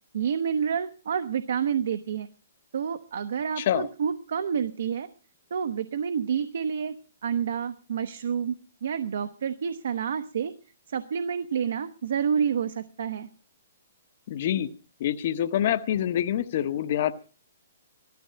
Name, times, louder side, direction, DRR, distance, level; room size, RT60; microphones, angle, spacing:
voice 1, 0.1-2.3 2.7-5.1 5.5-6.9 7.2-8.5 8.8-10.5 10.9-13.3, right 7 dB, 55° right, 10 dB, 0.9 m, -28 dB
voice 2, 14.3-14.7 15.0-17.1, left 11 dB, 35° left, 10 dB, 0.9 m, -26 dB
15.5 x 13.0 x 5.7 m, 0.37 s
hypercardioid pair, 175°, 0 cm